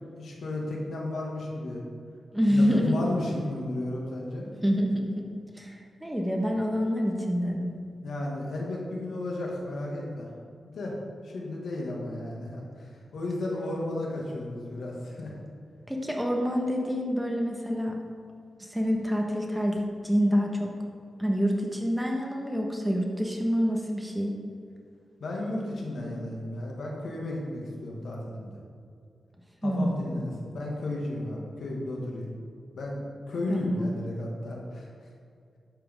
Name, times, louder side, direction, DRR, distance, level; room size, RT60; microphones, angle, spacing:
voice 1, 0.1-1.8 2.5-4.5 8.0-10.3 10.6-11.0 11.2-15.3 25.2-28.6 29.6-32.3 32.8-34.9, left 1 dB, 80° left, -2 dB, 2.0 m, -33 dB
voice 2, 2.3-2.9 4.6-5.3 5.6-7.7 15.9-18.0 18.6-20.7 21.2-24.4 29.6-30.2 33.5-33.9, equal, 5° right, 0 dB, 1.4 m, -27 dB
11.5 x 7.8 x 3.7 m, 2.3 s
wide cardioid pair, 90°, 0 cm